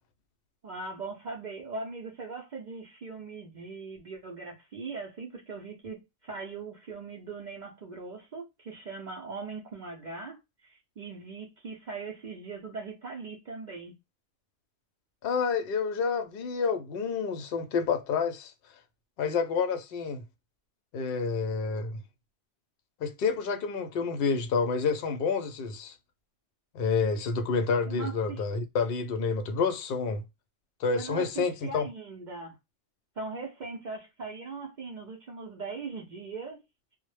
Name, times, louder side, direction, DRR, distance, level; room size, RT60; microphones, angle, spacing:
voice 1, 0.6-13.9 27.8-28.4 30.9-32.6 33.2-36.6, right 4 dB, 55° right, 0.5 m, -40 dB
voice 2, 15.2-18.5 19.2-20.2 20.9-22.0 23.0-25.9 26.7-30.2 30.8-31.8, left 5 dB, 60° left, 0.6 m, -29 dB
2.1 x 2.0 x 3.1 m
omnidirectional pair, 1.2 m